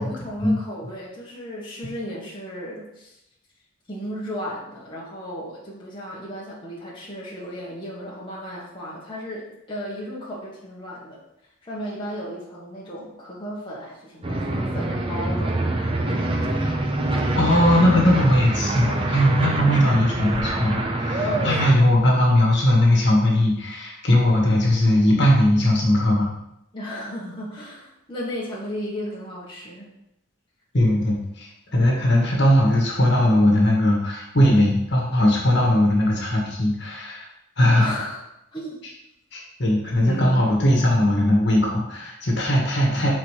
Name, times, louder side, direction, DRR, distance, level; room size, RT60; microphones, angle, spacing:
voice 1, 0.0-3.2 3.9-11.2 11.6-15.5 16.2-16.3 21.2-21.9 26.7-29.9 37.8-38.2 38.5-38.8 40.0-40.5, equal, 25° left, -6 dB, 1.3 m, -34 dB
sound 1, 14.2-21.7, right 2 dB, 25° right, 0.6 m, -25 dB
voice 2, 17.4-26.3 30.7-37.3 37.6-37.9 39.3-43.1, left 1 dB, 55° left, -2 dB, 1.5 m, -19 dB
6.0 x 4.3 x 4.9 m, 0.82 s
head